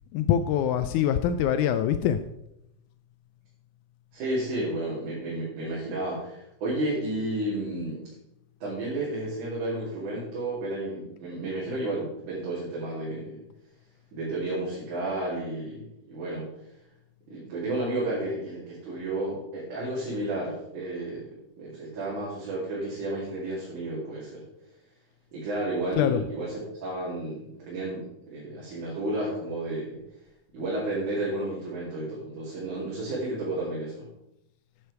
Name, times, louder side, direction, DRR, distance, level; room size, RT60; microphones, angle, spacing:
voice 1, 0.1-2.2 26.0-26.2, left 9 dB, 80° left, 10 dB, 1.9 m, -24 dB
voice 2, 4.1-8.0 8.6-13.4 14.1-16.5 17.3-24.4 25.3-30.0 30.5-34.1, right 1 dB, 70° right, -7 dB, 3.8 m, -32 dB
9.7 x 7.8 x 4.7 m, 0.84 s
omnidirectional pair, 3.6 m